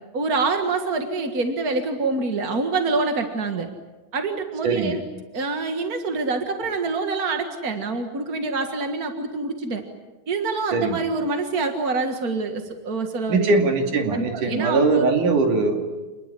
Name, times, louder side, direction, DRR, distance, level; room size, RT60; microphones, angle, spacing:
voice 1, 0.1-3.7 4.1-5.0 5.3-9.8 10.3-13.5 14.1-15.1, right 3 dB, 45° right, 5 dB, 1.2 m, -26 dB
voice 2, 4.6-5.0 10.7-11.0 13.3-15.8, right 3 dB, 60° right, 4 dB, 3.9 m, -21 dB
27.5 x 20.5 x 10.0 m, 1.2 s
omnidirectional pair, 4.2 m